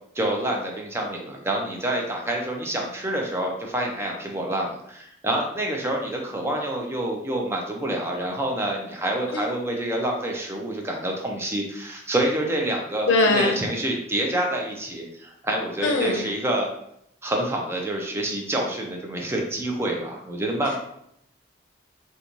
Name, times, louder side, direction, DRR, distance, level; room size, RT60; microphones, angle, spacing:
voice 1, 0.2-16.7 17.2-20.8, right 1 dB, 15° right, 0 dB, 0.4 m, -27 dB
voice 2, 13.1-13.6 15.8-16.2, left 2 dB, 80° left, 2 dB, 0.5 m, -20 dB
2.9 x 2.2 x 2.5 m, 0.73 s
head